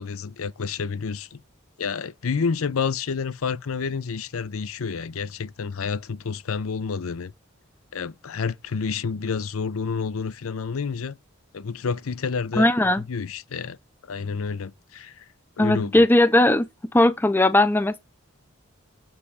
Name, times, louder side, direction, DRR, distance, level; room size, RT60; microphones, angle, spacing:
voice 1, 0.0-1.4 1.8-7.3 7.9-11.2 11.5-12.7 13.0-13.8 14.0-15.3 15.6-16.1, left 5 dB, 80° left, 0.6 m, -29 dB
voice 2, 12.6-13.0 15.6-16.7 16.9-18.0, left 1 dB, 10° left, 0.4 m, -18 dB
7.1 x 4.9 x 4.9 m
head